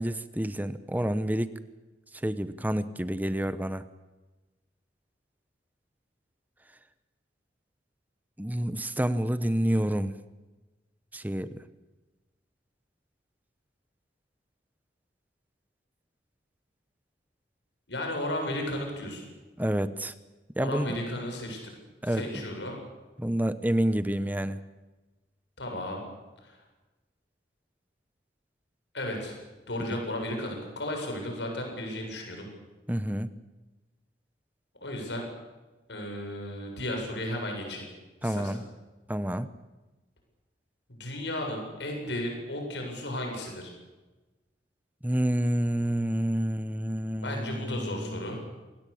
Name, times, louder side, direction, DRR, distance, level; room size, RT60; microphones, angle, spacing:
voice 1, 0.0-1.5 2.2-3.8 8.4-10.2 11.1-11.6 19.6-20.1 20.6-21.0 22.0-22.2 23.2-24.6 32.9-33.3 38.2-38.6 39.1-39.5 45.0-48.3, right 1 dB, 10° right, 13 dB, 1.0 m, -28 dB
voice 2, 17.9-19.3 20.6-21.7 22.0-22.8 25.6-26.0 26.4-26.6 28.9-29.4 29.7-32.5 34.8-35.2 35.9-37.9 38.2-38.6 40.9-43.7 47.2-48.4, left 1 dB, 80° left, 2 dB, 7.7 m, -34 dB
26.5 x 19.0 x 8.7 m, 1.2 s
head